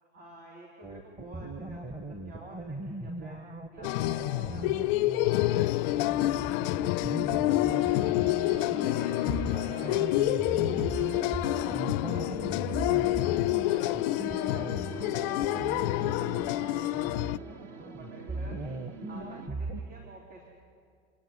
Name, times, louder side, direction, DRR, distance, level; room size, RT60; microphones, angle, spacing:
voice 1, 0.1-3.4 3.7-4.7 5.1-8.2 8.5-11.4 11.7-14.9 15.2-18.8 19.1-20.4, right 2 dB, 65° right, -1 dB, 4.0 m, -51 dB
sound 1, 0.8-19.8, right 2 dB, 15° right, 1.3 m, -39 dB
sound 2, 3.8-17.4, left 18 dB, 45° left, 0.4 m, -28 dB
sound 3, 7.6-19.5, right 6 dB, 40° right, 1.0 m, -45 dB
27.0 x 10.5 x 9.9 m, 2.2 s
hypercardioid pair, 100°, 37 cm